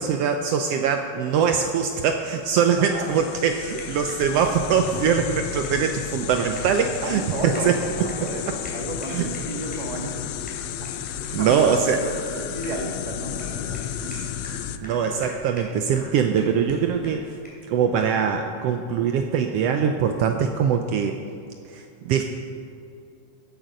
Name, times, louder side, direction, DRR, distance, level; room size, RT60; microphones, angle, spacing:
voice 1, 0.0-7.8 8.2-8.6 9.1-9.3 11.3-12.0 14.0-14.3 14.8-17.4 17.7-21.2 21.7-22.2, right 7 dB, 80° right, 5 dB, 1.4 m, -23 dB
sound 1, 2.4-14.8, left 11 dB, 80° left, 1.5 m, -33 dB
sound 2, 3.7-17.7, equal, 5° left, 2.4 m, -46 dB
voice 2, 7.0-10.2 10.8-14.1, right 2 dB, 65° right, 1 dB, 0.4 m, -33 dB
sound 3, 9.1-10.3 10.5-10.9 11.1-15.9, left 1 dB, 55° left, 3.3 m, -43 dB
14.0 x 8.4 x 5.1 m, 2.5 s
omnidirectional pair, 3.3 m